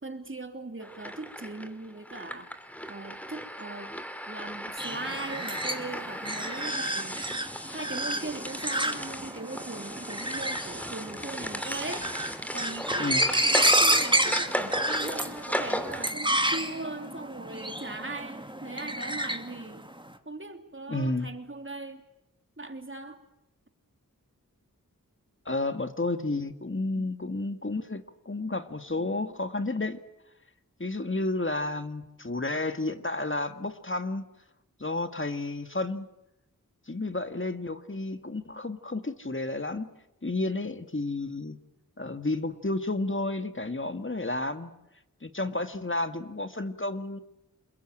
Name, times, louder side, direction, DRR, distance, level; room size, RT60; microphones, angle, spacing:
voice 1, 0.0-2.5 2.9-3.9 4.3-7.2 7.7-12.1 12.5-19.9 20.2-22.0 22.6-23.2 26.9-27.1, right 2 dB, 35° right, 6 dB, 3.2 m, -39 dB
sound 1, 0.8-16.1, equal, 5° left, 2.9 m, -36 dB
sound 2, 4.8-19.9, right 1 dB, 15° right, 2.5 m, -30 dB
voice 2, 20.9-21.3 25.5-30.0 30.8-34.3 34.8-36.1 36.9-39.9 40.2-41.6 42.0-44.7 45.2-47.2, left 2 dB, 35° left, 9 dB, 1.9 m, -31 dB
29.0 x 21.5 x 9.1 m, 0.87 s
wide cardioid pair, 55°, 34 cm